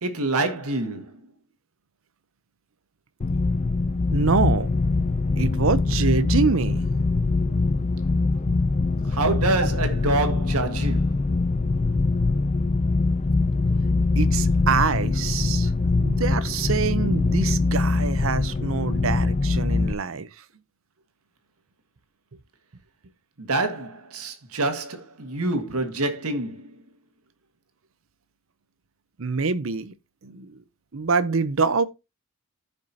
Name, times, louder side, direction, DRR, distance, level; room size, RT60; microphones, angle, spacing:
voice 1, 0.0-1.1 9.1-11.1 23.4-26.7, right 2 dB, 90° right, 1.7 m, -26 dB
sound 1, 3.2-19.9, left 3 dB, 30° left, 0.4 m, -23 dB
voice 2, 4.1-4.7 5.3-6.9 14.2-15.7 16.0-20.3 29.2-29.9 30.2-30.6 30.9-31.9, right 4 dB, 65° right, 0.7 m, -25 dB
14.5 x 5.3 x 2.8 m
head